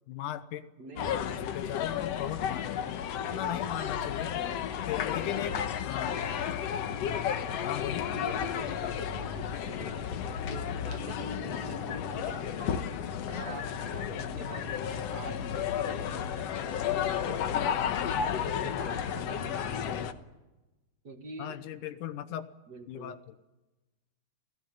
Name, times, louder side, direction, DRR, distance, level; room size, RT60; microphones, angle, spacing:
voice 1, 0.1-0.6 1.0-4.4 4.9-5.6 5.9-6.2 7.0-7.3 7.6-8.1 21.4-22.5 22.9-23.3, left 12 dB, 85° left, 10 dB, 2.6 m, -38 dB
voice 2, 0.8-2.1 3.2-3.8 4.3-4.6 4.9-5.7 6.0-6.3 8.1-12.9 13.3-20.2 21.0-21.6 22.7-23.2, right 3 dB, 40° right, 7 dB, 1.8 m, -46 dB
sound 1, 1.0-20.1, left 8 dB, 65° left, 2.0 m, -33 dB
28.5 x 18.0 x 9.2 m, 1.1 s
omnidirectional pair, 3.5 m